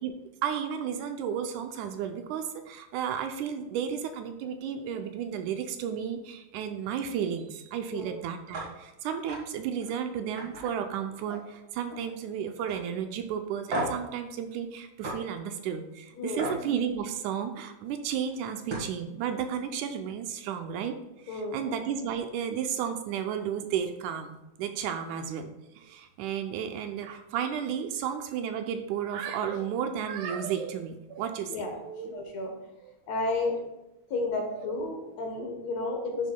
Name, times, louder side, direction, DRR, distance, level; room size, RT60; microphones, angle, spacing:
voice 1, 0.4-21.0 21.3-32.1 32.8-32.9, right 8 dB, 80° right, 7 dB, 1.9 m, -33 dB
sound 1, 8.5-8.7 9.1-9.4 9.8-10.0 10.4-11.5 11.8-12.2 12.7-12.8 13.7-14.1 15.0-15.2 16.4-16.6 18.3-18.4 18.7-19.0, right 1 dB, 45° right, 1.6 m, -34 dB
voice 2, 16.1-16.5 21.3-21.6 31.5-31.8 32.1-32.5 33.1-33.6 34.1-36.3, left 3 dB, 65° left, 1 dB, 2.1 m, -32 dB
11.0 x 5.5 x 2.2 m, 0.93 s
omnidirectional pair, 3.5 m